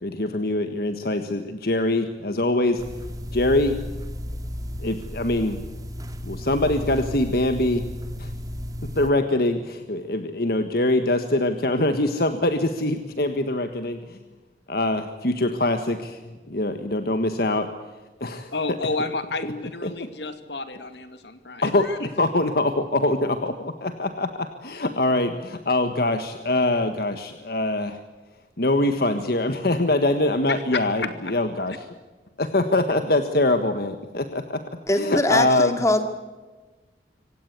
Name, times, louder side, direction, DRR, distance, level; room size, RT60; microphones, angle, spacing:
voice 1, 0.0-2.8 3.3-3.8 4.8-5.6 6.2-7.8 8.2-8.3 8.9-14.2 14.7-17.7 18.2-18.5 19.8-20.1 21.6-21.9 22.2-28.0 28.6-31.8 32.4-34.6 35.0-35.8, left 2 dB, 55° left, 8 dB, 1.6 m, -23 dB
sound 1, 2.8-9.1, equal, 20° right, 1.9 m, -34 dB
voice 2, 18.5-22.1 30.7-31.3, left 3 dB, 75° left, 9 dB, 2.4 m, -31 dB
voice 3, 34.9-36.1, left 1 dB, 15° left, 7 dB, 2.3 m, -22 dB
26.0 x 17.5 x 8.3 m, 1.2 s
head